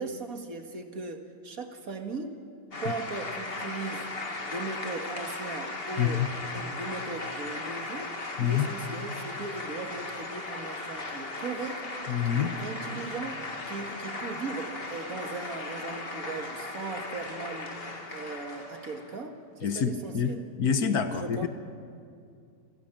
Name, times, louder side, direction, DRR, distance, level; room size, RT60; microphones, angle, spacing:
voice 1, 0.0-2.3 2.8-4.1 4.4-6.3 6.5-11.9 12.3-13.4 13.7-20.4 21.1-21.5, right 3 dB, 55° right, 5 dB, 2.1 m, -38 dB
sound 1, 2.7-19.2, left 2 dB, 35° left, 2.1 m, -37 dB
voice 2, 6.0-6.3 8.4-8.7 12.1-12.5 19.6-21.5, left 7 dB, 65° left, 9 dB, 1.5 m, -27 dB
27.5 x 16.0 x 8.9 m, 2.4 s
omnidirectional pair, 1.8 m